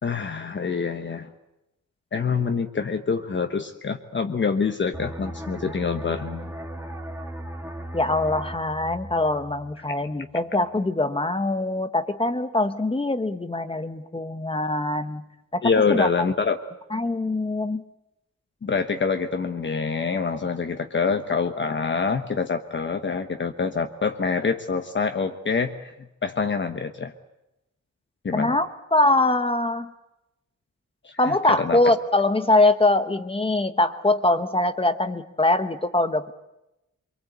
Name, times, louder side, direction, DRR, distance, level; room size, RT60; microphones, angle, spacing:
voice 1, 0.0-1.3 2.1-6.5 15.6-16.6 18.6-25.9 26.2-27.1 28.2-28.6 31.0-31.9, left 5 dB, 40° left, 6 dB, 1.2 m, -26 dB
sound 1, 4.9-10.3 10.6-10.9, right 1 dB, 10° right, 2.2 m, -37 dB
voice 2, 7.9-15.2 15.5-16.1 16.9-17.8 28.3-29.9 31.2-36.3, left 2 dB, 20° left, 9 dB, 1.0 m, -23 dB
26.0 x 23.5 x 8.2 m, 0.92 s
wide cardioid pair, 165°, 30 cm